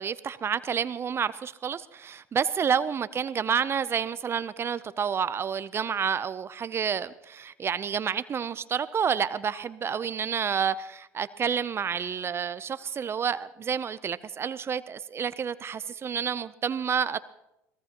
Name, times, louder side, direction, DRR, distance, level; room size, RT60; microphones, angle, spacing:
voice 1, 0.0-17.2, right 7 dB, 35° right, 15 dB, 0.6 m, -29 dB
23.0 x 18.5 x 3.0 m, 0.89 s
hypercardioid pair, 75°, 7 cm